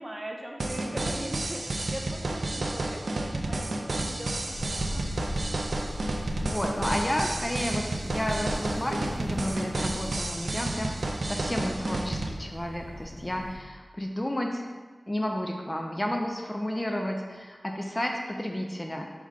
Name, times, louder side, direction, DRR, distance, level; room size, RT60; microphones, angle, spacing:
voice 1, 0.0-5.1, right 1 dB, 25° right, 1 dB, 0.6 m, -40 dB
sound 1, 0.6-12.3, right 2 dB, 85° right, 0.4 m, -31 dB
sound 2, 4.4-13.6, equal, 80° left, 0.6 m, -39 dB
voice 2, 6.4-14.7 15.1-19.1, left 1 dB, 20° left, 2 dB, 0.4 m, -32 dB
4.0 x 2.8 x 4.7 m, 1.4 s
wide cardioid pair, 60°, 0 cm